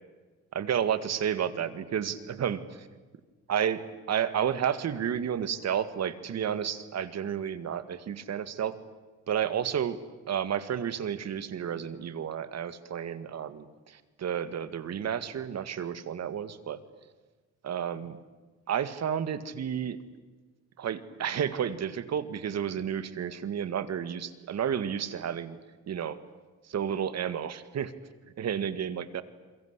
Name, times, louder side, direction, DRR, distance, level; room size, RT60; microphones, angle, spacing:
voice 1, 0.5-2.6 3.5-8.8 9.3-10.0 10.3-16.8 17.6-18.2 18.7-20.0 20.8-25.6 25.9-26.2 26.7-27.9 28.4-29.2, right 8 dB, 60° right, 13 dB, 2.0 m, -31 dB
29.0 x 23.0 x 8.3 m, 1.3 s
cardioid pair, 90°, 30 cm